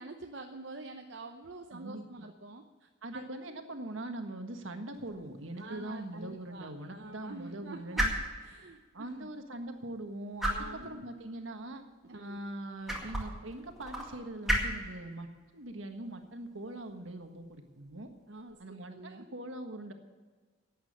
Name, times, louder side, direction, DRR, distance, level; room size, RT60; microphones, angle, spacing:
voice 1, 0.0-3.3 5.6-9.3 10.5-11.0 12.0-12.4 18.3-19.3, right 2 dB, 60° right, 3 dB, 0.8 m, -47 dB
voice 2, 1.7-2.0 3.0-8.1 8.9-11.8 12.2-15.3 15.5-18.1 18.6-19.9, right 1 dB, 75° right, 5 dB, 1.5 m, -42 dB
sound 1, 4.9-18.5, equal, ahead, 2.1 m, -39 dB
11.5 x 8.9 x 8.7 m, 1.4 s
head